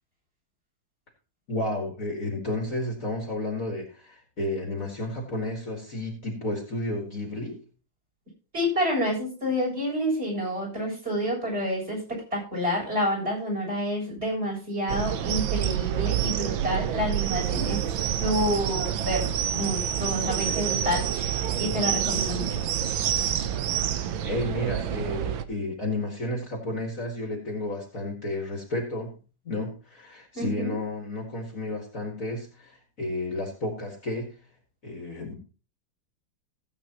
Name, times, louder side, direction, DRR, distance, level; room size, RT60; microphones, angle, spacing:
voice 1, 1.5-7.6 24.2-29.2 29.5-34.4 34.8-35.3, left 1 dB, 40° left, 1 dB, 2.2 m, -32 dB
voice 2, 8.5-17.8 18.2-22.7 30.3-30.8, equal, 30° right, -2 dB, 7.8 m, -29 dB
sound 1, 14.9-25.4, right 10 dB, 75° right, 1.5 m, -27 dB
16.5 x 8.6 x 3.0 m, 0.35 s
omnidirectional pair, 2.2 m